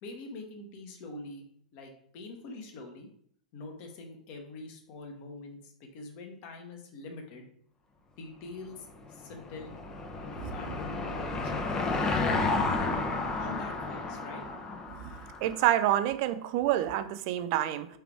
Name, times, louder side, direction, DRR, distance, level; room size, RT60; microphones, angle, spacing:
voice 1, 0.0-1.4 1.7-3.1 3.5-7.5 8.2-9.7 10.2-11.9 12.8-13.1 13.4-14.4, left 3 dB, 40° left, 3 dB, 1.0 m, -44 dB
Car passing by / Engine, 9.0-15.8, left 3 dB, 20° left, 0.6 m, -32 dB
voice 2, 15.4-17.9, right 13 dB, 40° right, 12 dB, 0.4 m, -28 dB
4.7 x 3.4 x 3.3 m, 0.63 s
figure-of-eight pair, 95°, 4 cm